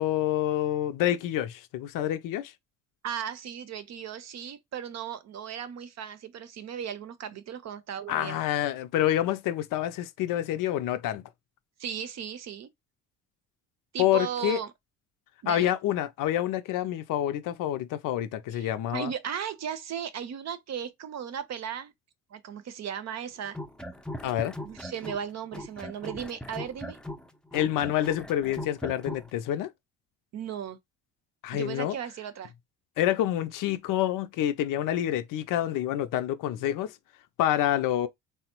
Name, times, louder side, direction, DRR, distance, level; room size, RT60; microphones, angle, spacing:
voice 1, 0.0-2.5 8.1-11.2 14.0-14.6 15.5-19.1 24.2-24.6 27.5-29.7 31.4-32.0 33.0-36.9 37.4-38.1, left 12 dB, 60° left, 0.6 m, -27 dB
voice 2, 3.0-8.4 11.8-12.7 13.9-14.7 15.4-15.7 18.5-21.9 22.3-23.6 24.6-27.0 30.3-30.8 31.5-32.5, right 8 dB, 50° right, 0.7 m, -36 dB
sound 1, 23.5-25.3 25.5-29.3, left 1 dB, ahead, 0.6 m, -39 dB
3.4 x 2.0 x 2.9 m
hypercardioid pair, 60°, 36 cm